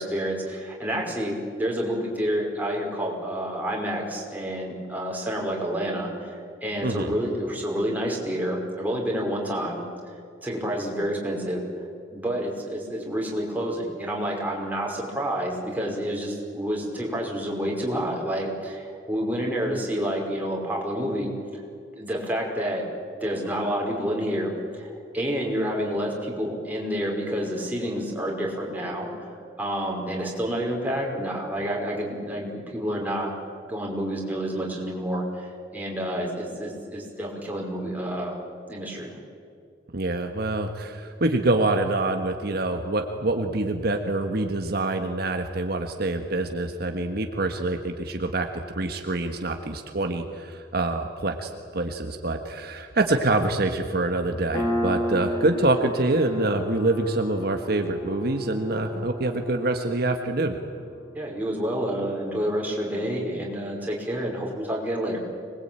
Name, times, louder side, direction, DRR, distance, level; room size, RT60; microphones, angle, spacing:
voice 1, 0.0-9.8 10.4-11.6 12.1-21.3 22.0-22.8 23.2-29.3 29.6-33.3 33.7-38.4 38.7-39.1 61.1-65.2, equal, 10° right, -2 dB, 5.4 m, -29 dB
voice 2, 39.9-48.5 48.7-60.6, right 2 dB, 60° right, 4 dB, 1.5 m, -26 dB
Piano, 54.5-61.7, equal, 25° left, 4.1 m, -33 dB
25.5 x 21.0 x 9.0 m, 2.3 s
head